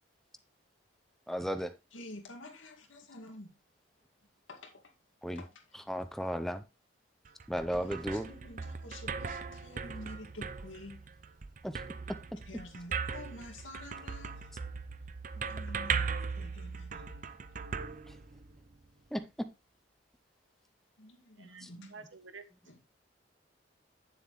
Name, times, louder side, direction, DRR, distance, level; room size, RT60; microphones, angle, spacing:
voice 1, 1.3-1.7 5.2-5.4 5.9-6.6 7.5-8.3 11.6-11.8 18.1-18.2 19.1-19.2 21.6-21.7, equal, ahead, 0.6 m, -34 dB
voice 2, 1.9-3.6 4.5-4.9 5.4-5.6 7.7-11.1 12.5-14.5 15.3-17.2 21.0-22.1 22.7-22.8, left 1 dB, 85° left, 2.1 m, -49 dB
sound 1, 7.2-18.7, right 5 dB, 40° right, 0.6 m, -39 dB
voice 3, 21.4-22.5, right 4 dB, 80° right, 1.2 m, -50 dB
9.3 x 7.1 x 3.1 m
head